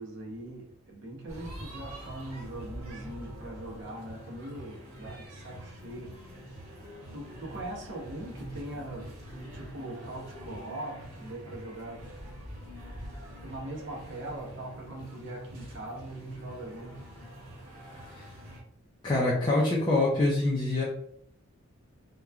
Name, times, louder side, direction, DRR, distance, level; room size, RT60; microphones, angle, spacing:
voice 1, 0.0-6.4 7.1-12.0 13.4-17.0, right 1 dB, 60° right, -1 dB, 0.8 m, -41 dB
sound 1, 1.3-18.6, equal, 80° right, 1.3 m, -45 dB
voice 2, 19.0-20.8, left 2 dB, 20° left, -5 dB, 0.4 m, -25 dB
2.9 x 2.2 x 2.3 m, 0.68 s
head